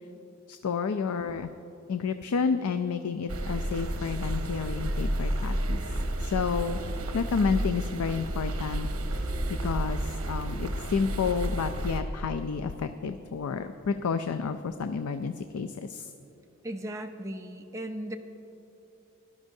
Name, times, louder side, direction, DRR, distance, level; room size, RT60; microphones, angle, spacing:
voice 1, 0.5-1.5 1.9-5.8 6.2-6.8 7.1-8.9 9.1-16.1, left 5 dB, 90° left, 9 dB, 0.4 m, -30 dB
sound 1, 3.3-12.0, right 1 dB, 80° right, 0.9 m, -31 dB
voice 2, 16.6-18.2, right 1 dB, 15° right, 3 dB, 0.5 m, -36 dB
17.5 x 12.0 x 2.7 m, 2.9 s
head